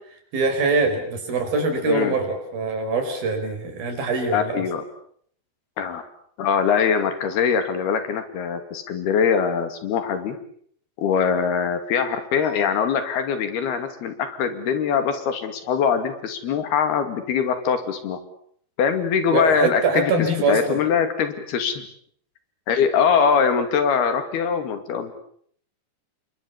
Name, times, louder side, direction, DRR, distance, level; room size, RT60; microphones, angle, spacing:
voice 1, 0.3-4.6 19.3-20.8, right 3 dB, 70° right, 6 dB, 6.6 m, -23 dB
voice 2, 4.3-4.8 5.8-6.0 6.4-10.4 11.0-18.2 18.8-21.8 22.7-25.1, left 6 dB, 85° left, 8 dB, 4.5 m, -22 dB
29.5 x 24.0 x 7.2 m, 0.63 s
omnidirectional pair, 4.4 m